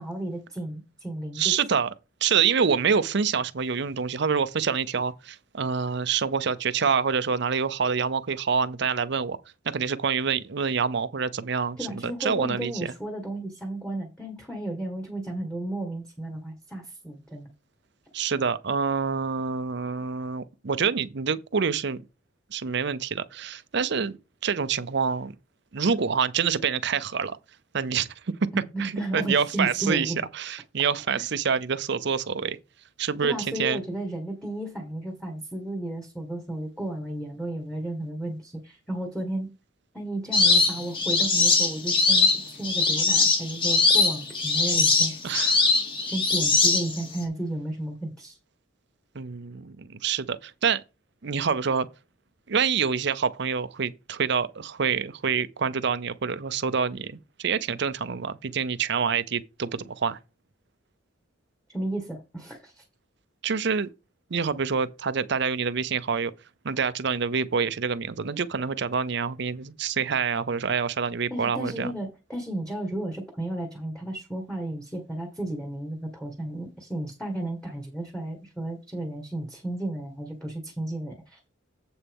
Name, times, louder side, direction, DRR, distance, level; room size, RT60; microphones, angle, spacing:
voice 1, 0.0-1.6 11.8-17.5 28.5-30.2 31.2-31.3 33.2-39.5 39.9-45.5 46.1-48.4 61.7-62.8 71.3-81.5, right 1 dB, 5° left, 1.7 m, -33 dB
voice 2, 1.4-1.9 2.2-9.4 9.6-12.7 18.1-22.0 22.5-24.2 24.4-25.3 25.7-27.4 27.7-28.1 28.4-28.5 28.8-32.6 33.0-33.3 33.6-33.8 45.2-45.6 49.1-50.8 51.2-51.9 52.5-60.2 63.4-63.9 64.3-66.3 66.6-71.9, right 6 dB, 65° right, 0.6 m, -26 dB
sound 1, 40.3-47.2, left 3 dB, 25° left, 2.2 m, -21 dB
7.9 x 6.9 x 3.6 m
head